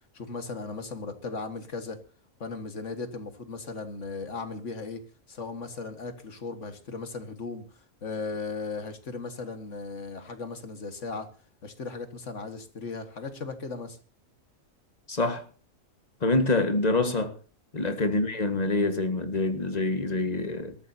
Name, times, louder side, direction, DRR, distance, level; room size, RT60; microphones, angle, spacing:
voice 1, 0.1-2.0 2.4-5.0 5.3-11.3 11.6-14.0 18.0-18.2, left 4 dB, 60° left, 2.0 m, -37 dB
voice 2, 15.1-15.4 16.2-17.3 17.7-20.8, left 2 dB, 30° left, 1.6 m, -26 dB
23.0 x 14.0 x 2.8 m
omnidirectional pair, 1.4 m